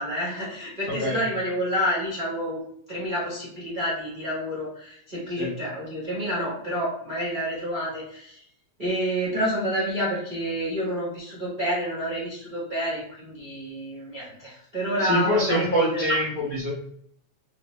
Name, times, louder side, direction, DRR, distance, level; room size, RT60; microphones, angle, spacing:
voice 1, 0.0-2.6 2.9-8.4 8.8-16.2, equal, 60° right, -7 dB, 0.5 m, -29 dB
voice 2, 0.9-1.2 5.4-5.5 15.0-16.7, equal, 85° left, -7 dB, 0.7 m, -25 dB
4.9 x 2.1 x 3.0 m, 0.65 s
omnidirectional pair, 3.3 m